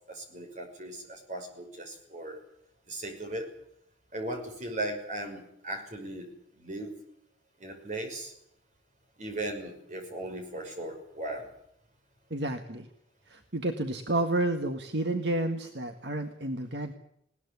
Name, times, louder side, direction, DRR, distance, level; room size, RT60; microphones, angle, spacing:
voice 1, 0.1-2.4 2.9-3.5 4.1-7.0 7.6-8.3 9.2-11.5, right 1 dB, 40° right, 4 dB, 5.9 m, -37 dB
voice 2, 12.3-12.9 13.3-16.9, right 2 dB, 60° right, 6 dB, 1.7 m, -30 dB
20.5 x 19.0 x 9.7 m, 0.73 s
head